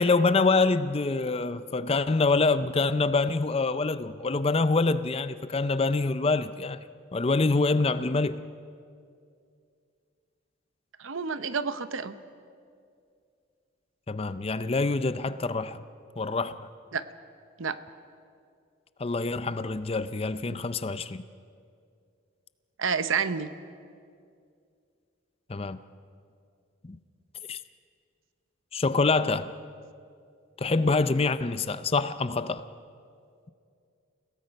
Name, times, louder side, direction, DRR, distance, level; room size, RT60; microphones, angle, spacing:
voice 1, 0.0-6.8 7.1-8.5 14.1-15.8 16.2-16.7 19.0-21.2 25.5-25.8 26.8-27.0 27.5-27.6 28.7-29.5 30.6-32.7, left 3 dB, 30° left, 13 dB, 0.5 m, -25 dB
voice 2, 11.0-12.2 16.9-17.0 17.6-17.8 22.8-23.5, right 6 dB, 75° right, 12 dB, 0.8 m, -29 dB
29.5 x 17.5 x 5.3 m, 2.3 s
head